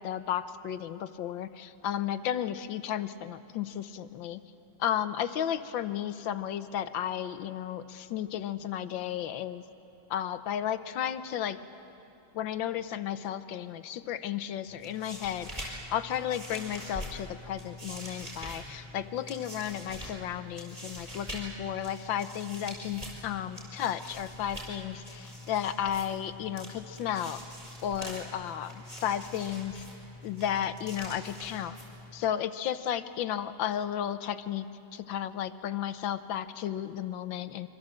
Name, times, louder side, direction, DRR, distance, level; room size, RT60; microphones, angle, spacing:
voice 1, 0.0-4.4 4.8-9.6 10.1-11.6 12.3-27.4 27.8-29.8 30.2-31.8 32.1-37.7, left 10 dB, 70° left, 12 dB, 1.5 m, -33 dB
sound 1, 14.7-32.3, equal, 20° right, 5.8 m, -44 dB
26.0 x 25.0 x 7.6 m, 2.8 s
omnidirectional pair, 2.3 m